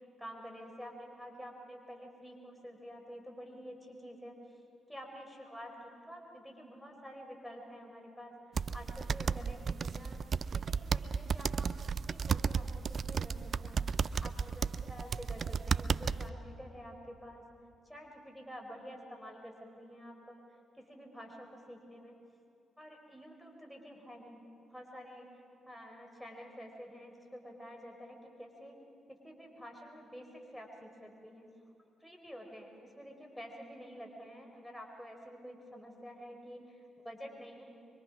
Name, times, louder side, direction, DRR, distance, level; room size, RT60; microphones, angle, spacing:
voice 1, 0.2-4.4 4.9-10.2 10.5-13.9 14.2-17.4 17.8-20.4 20.7-22.2 22.8-28.8 29.1-31.5 32.0-37.6, equal, ahead, 1 dB, 4.6 m, -49 dB
sound 1, 8.6-16.3, right 6 dB, 50° right, 0.5 m, -34 dB
24.5 x 24.0 x 6.1 m, 2.5 s
hypercardioid pair, 45°, 0 cm